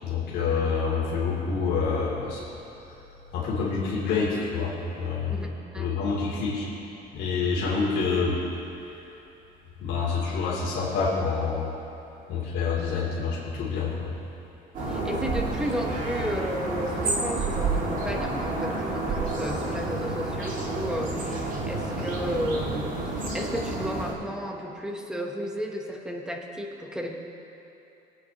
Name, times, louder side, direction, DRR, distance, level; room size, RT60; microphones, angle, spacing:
voice 1, 0.0-2.4 3.3-5.3 5.8-6.7 7.1-8.4 9.8-11.7 12.3-14.1, left 5 dB, 75° left, -7 dB, 2.8 m, -27 dB
voice 2, 5.3-5.9 14.9-27.1, equal, 5° right, 1 dB, 1.0 m, -33 dB
sound 1, 14.7-24.1, right 2 dB, 45° right, 2.1 m, -29 dB
22.5 x 8.9 x 3.0 m, 2.9 s
cardioid pair, 155°, 19 cm